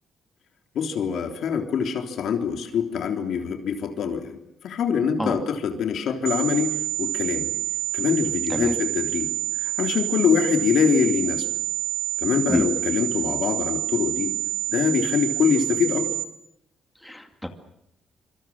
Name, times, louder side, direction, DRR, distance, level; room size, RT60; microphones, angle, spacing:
voice 1, 0.8-4.4 4.6-7.5 7.9-9.3 9.6-11.5 12.2-14.3 14.7-16.1, left 7 dB, 65° left, 5 dB, 3.5 m, -24 dB
sound 1, 6.3-16.3, right 13 dB, 60° right, 1.8 m, -28 dB
voice 2, 17.0-17.5, left 1 dB, 5° left, 5 dB, 2.3 m, -27 dB
26.5 x 24.5 x 7.4 m, 0.78 s
cardioid pair, 130°, 0 cm